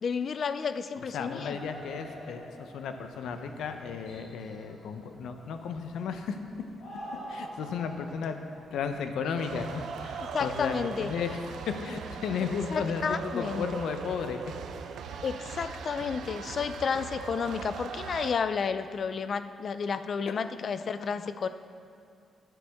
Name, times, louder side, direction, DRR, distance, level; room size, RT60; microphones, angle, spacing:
voice 1, 0.0-1.6 10.3-11.2 12.7-13.9 15.2-21.5, left 6 dB, 45° left, 12 dB, 0.3 m, -31 dB
voice 2, 1.0-6.4 7.3-8.4 8.7-10.7 11.0-11.4 11.7-14.4 20.3-20.4, left 6 dB, 90° left, 7 dB, 0.6 m, -34 dB
sound 1, 1.3-12.1, equal, 70° left, 2.0 m, -48 dB
sound 2, 9.3-18.3, right 6 dB, 80° right, 0.5 m, -40 dB
9.6 x 9.0 x 3.5 m, 2.3 s
wide cardioid pair, 160°, 0 cm